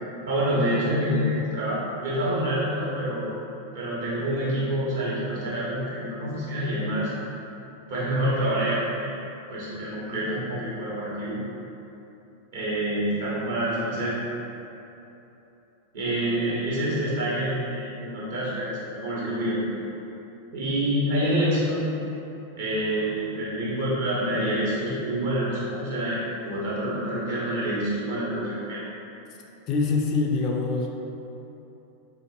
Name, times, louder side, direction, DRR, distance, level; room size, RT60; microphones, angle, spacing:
voice 1, 0.3-3.3 3.7-7.1 7.9-9.1 9.5-11.3 12.5-14.2 15.9-19.6 20.5-21.8 22.5-28.8, right 1 dB, 60° right, -8 dB, 1.2 m, -27 dB
voice 2, 29.7-30.9, left 4 dB, 40° left, 0 dB, 0.3 m, -24 dB
4.0 x 2.5 x 2.9 m, 3.0 s
figure-of-eight pair, 90°, 0 cm